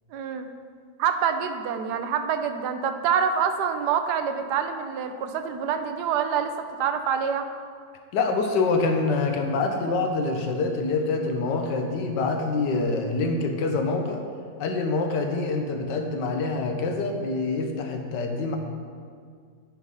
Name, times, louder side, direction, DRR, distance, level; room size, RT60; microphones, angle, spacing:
voice 1, 0.1-0.5 1.0-7.4, right 7 dB, 80° right, 8 dB, 1.2 m, -26 dB
voice 2, 8.1-14.2 14.6-18.6, left 3 dB, 90° left, 4 dB, 1.5 m, -26 dB
9.7 x 4.0 x 5.3 m, 2.1 s
omnidirectional pair, 1.8 m